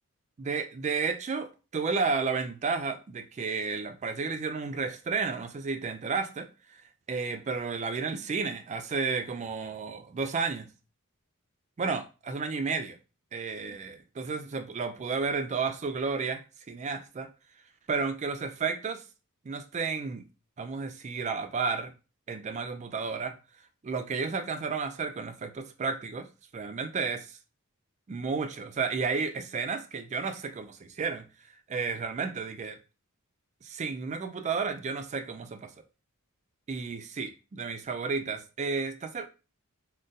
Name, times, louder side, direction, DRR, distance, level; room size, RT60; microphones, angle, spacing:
voice 1, 0.4-6.5 7.1-10.7 11.8-13.0 13.3-17.3 17.9-19.0 19.5-20.2 20.6-21.9 22.3-23.4 23.8-26.3 26.5-27.4 28.1-31.2 31.7-32.8 33.6-35.7 36.7-39.3, right 4 dB, 30° right, 0.3 m, -32 dB
3.8 x 2.1 x 2.6 m
head